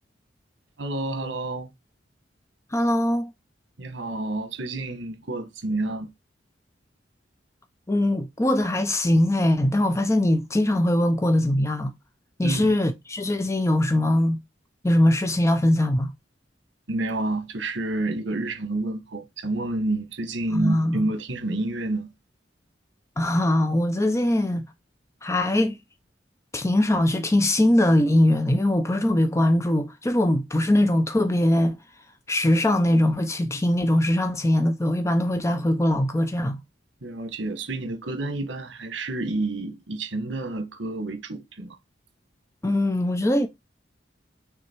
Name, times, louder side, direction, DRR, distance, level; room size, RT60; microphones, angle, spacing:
voice 1, 0.8-1.7 3.8-6.1 12.4-12.7 16.9-22.1 37.0-41.8, right 2 dB, 85° right, 1.4 m, -29 dB
voice 2, 2.7-3.3 7.9-11.9 12.4-14.4 14.8-16.1 20.5-21.1 23.2-24.6 25.2-25.8 26.5-31.8 32.3-36.6 42.6-43.5, left 1 dB, 15° left, 0.6 m, -21 dB
6.2 x 3.5 x 4.4 m
head